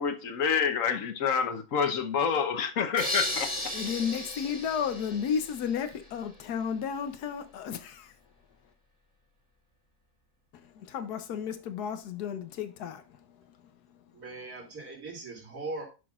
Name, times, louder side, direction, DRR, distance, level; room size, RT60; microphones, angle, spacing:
voice 1, 0.0-3.5, left 6 dB, 60° left, 1.3 m, -28 dB
sound 1, 3.0-6.0, left 1 dB, 25° left, 1.7 m, -35 dB
voice 2, 3.7-8.1 10.6-14.1, left 7 dB, 90° left, 1.3 m, -33 dB
voice 3, 14.1-15.8, right 3 dB, 75° right, 3.3 m, -39 dB
11.0 x 5.9 x 2.4 m
omnidirectional pair, 1.6 m